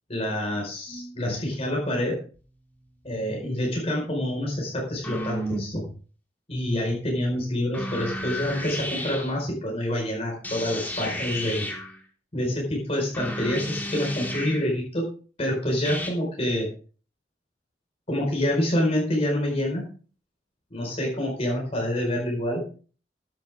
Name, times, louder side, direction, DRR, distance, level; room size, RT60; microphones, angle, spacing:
voice 1, 0.1-2.2 3.0-5.8 6.5-11.7 12.3-15.0 15.4-16.7 18.1-19.9 20.7-22.6, left 1 dB, 35° left, -1 dB, 4.7 m, -27 dB
sound 1, 0.9-1.2 2.3-2.4 2.9-3.7 5.0-5.9 7.7-9.3 10.4-12.0 13.1-14.7 15.8-16.1, equal, 10° left, 3.4 m, -33 dB
15.5 x 10.5 x 3.5 m, 0.40 s
head